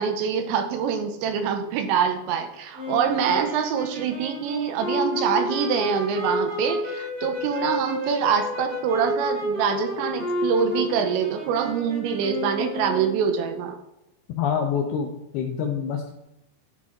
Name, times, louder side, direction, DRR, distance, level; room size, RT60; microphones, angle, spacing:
voice 1, 0.0-13.8, right 7 dB, 90° right, 6 dB, 2.9 m, -25 dB
sound 1, 2.8-13.2, left 1 dB, 50° right, 3.9 m, -30 dB
voice 2, 14.4-16.1, left 7 dB, 80° left, 2 dB, 2.3 m, -26 dB
11.5 x 4.3 x 3.6 m, 0.90 s
omnidirectional pair, 5.2 m